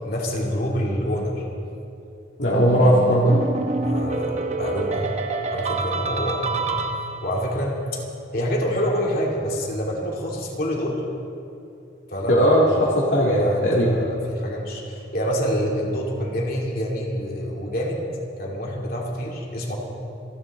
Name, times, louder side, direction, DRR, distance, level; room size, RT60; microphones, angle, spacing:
voice 1, 0.0-1.5 3.8-5.2 5.5-6.8 7.2-8.0 8.3-11.0 12.1-12.3 13.4-18.0 18.4-19.8, equal, 50° left, -2 dB, 2.7 m, -27 dB
voice 2, 2.4-3.4 12.3-14.0, equal, 75° left, -6 dB, 2.0 m, -18 dB
sound 1, 2.5-7.5, right 3 dB, 35° right, 0.9 m, -27 dB
29.0 x 11.0 x 3.7 m, 2.7 s
head